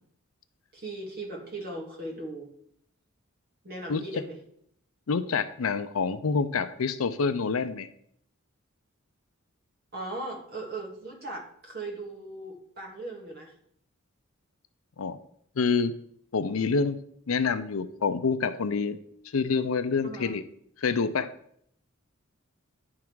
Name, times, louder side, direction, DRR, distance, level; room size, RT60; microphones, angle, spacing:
voice 1, 0.7-2.5 3.6-4.4 9.9-13.5 20.0-20.3, right 2 dB, 50° right, -1 dB, 2.0 m, -38 dB
voice 2, 5.1-7.9 15.0-15.2 15.6-15.9 16.3-17.0 17.3-19.0 19.3-20.4 20.8-21.3, left 5 dB, 75° left, 12 dB, 0.5 m, -27 dB
10.5 x 3.7 x 4.7 m, 0.67 s
head